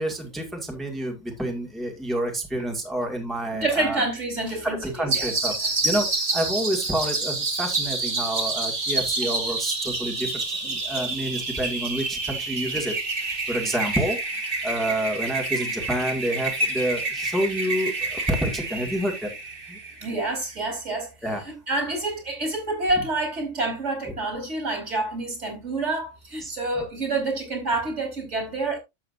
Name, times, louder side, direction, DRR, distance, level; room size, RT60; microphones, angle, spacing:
voice 1, 0.0-4.0 4.6-19.3 19.7-19.8 21.2-21.6 26.4-26.5, right 1 dB, ahead, 2.0 m, -29 dB
voice 2, 3.6-5.3 20.0-21.1 21.4-28.8, right 2 dB, 70° right, 4.6 m, -28 dB
sound 1, 5.1-20.3, right 3 dB, 45° right, 2.0 m, -28 dB
12.0 x 7.6 x 2.6 m
omnidirectional pair, 1.3 m